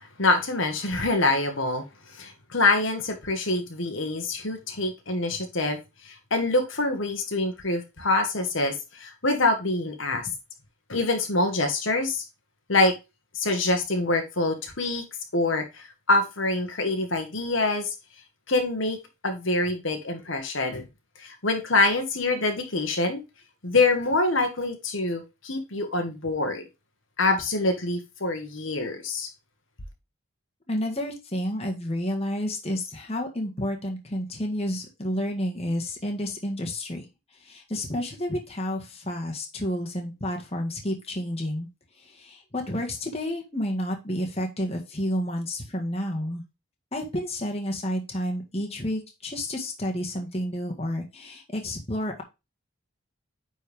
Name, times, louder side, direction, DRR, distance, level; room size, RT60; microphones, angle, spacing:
voice 1, 0.2-1.8 2.2-5.8 6.0-10.3 10.9-12.2 12.7-12.9 13.4-15.0 15.3-17.9 18.5-19.0 19.2-20.9 21.2-23.2 23.6-26.6 27.2-29.3, left 2 dB, 60° left, 4 dB, 1.6 m, -25 dB
voice 2, 30.7-37.1 37.3-41.7 42.0-46.4 46.9-52.2, left 1 dB, 30° left, 1 dB, 1.7 m, -30 dB
9.6 x 4.6 x 3.5 m, 0.25 s
head